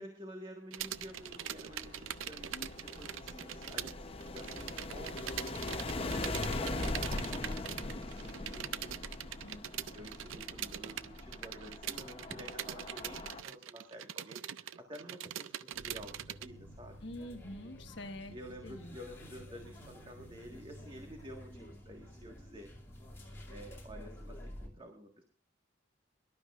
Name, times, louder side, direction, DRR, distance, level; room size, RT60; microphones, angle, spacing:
voice 1, 0.0-8.9 9.9-17.0 18.3-22.7 23.1-25.2, equal, 25° right, 2 dB, 1.6 m, -51 dB
sound 1, 0.7-3.9 4.2-16.5, right 11 dB, 85° right, 0.5 m, -42 dB
sound 2, 0.8-13.4, left 2 dB, 30° left, 0.8 m, -41 dB
sound 3, 15.7-24.7, equal, 15° left, 2.6 m, -50 dB
voice 2, 17.0-18.4 18.6-19.0, left 1 dB, 65° left, 6 dB, 1.4 m, -46 dB
23.5 x 12.0 x 2.5 m, 0.41 s
head